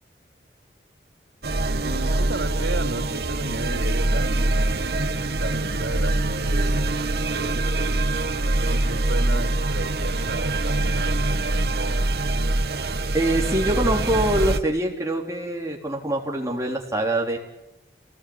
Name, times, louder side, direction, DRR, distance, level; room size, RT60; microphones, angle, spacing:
sound 1, 1.4-14.6, right 2 dB, 60° right, 1.4 m, -24 dB
voice 1, 1.8-5.0 5.4-6.9 7.3-8.1 8.4-12.0, right 2 dB, 90° right, 5 dB, 3.9 m, -34 dB
voice 2, 13.1-17.4, right 1 dB, 15° right, 0 dB, 4.0 m, -24 dB
27.5 x 19.5 x 9.1 m, 0.90 s
head